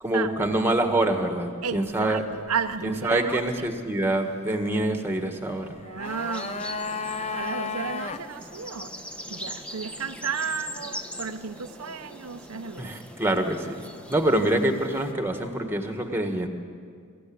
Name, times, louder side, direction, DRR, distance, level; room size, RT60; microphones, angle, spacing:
voice 1, 0.0-2.2 3.0-5.7 12.8-13.7 14.1-16.5, right 1 dB, 10° right, 1.5 m, -25 dB
voice 2, 1.6-3.7 5.7-8.9 9.3-12.9, right 6 dB, 70° right, 0.7 m, -33 dB
sound 1, 5.6-8.2 8.5-8.6, left 4 dB, 30° left, 0.7 m, -33 dB
sound 2, 6.0-15.1, equal, 5° left, 1.0 m, -41 dB
23.0 x 15.0 x 8.7 m
head